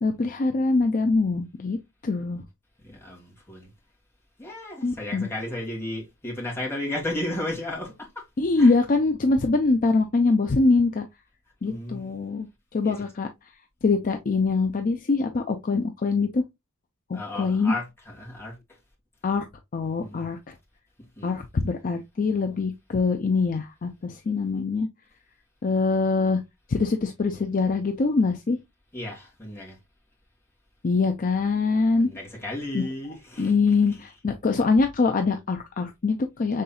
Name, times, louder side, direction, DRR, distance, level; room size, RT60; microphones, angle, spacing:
voice 1, 0.0-1.8 2.0-2.4 4.8-5.3 8.4-11.1 11.6-12.5 12.7-13.3 13.8-16.4 17.1-17.7 19.2-19.4 19.7-20.5 21.2-24.9 25.6-26.4 26.7-28.6 30.8-32.1 32.7-32.8 33.4-36.6, left 3 dB, 40° left, 0.5 m, -23 dB
voice 2, 2.8-3.7 4.4-8.2 8.6-8.8 11.6-12.3 12.8-13.1 17.1-18.6 20.0-20.3 21.2-21.4 28.9-29.8 32.0-33.7, left 1 dB, 10° left, 1.8 m, -34 dB
5.5 x 3.8 x 2.3 m
head